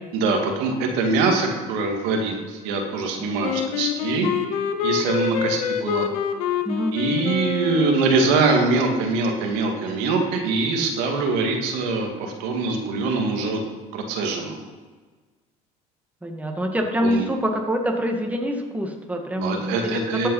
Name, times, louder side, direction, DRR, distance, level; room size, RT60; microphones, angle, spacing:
voice 1, 0.1-4.3 4.8-6.1 6.9-13.6 13.9-14.6 17.0-17.2 19.4-20.3, right 3 dB, 75° right, 2 dB, 2.1 m, -23 dB
voice 2, 3.2-3.5 6.7-7.0 16.2-20.3, equal, 10° right, 2 dB, 2.0 m, -26 dB
Wind instrument woodwind instrument, 3.4-8.5, left 9 dB, 80° left, 1.0 m, -26 dB
13.5 x 5.5 x 5.7 m, 1.3 s
hypercardioid pair, 75°, 18 cm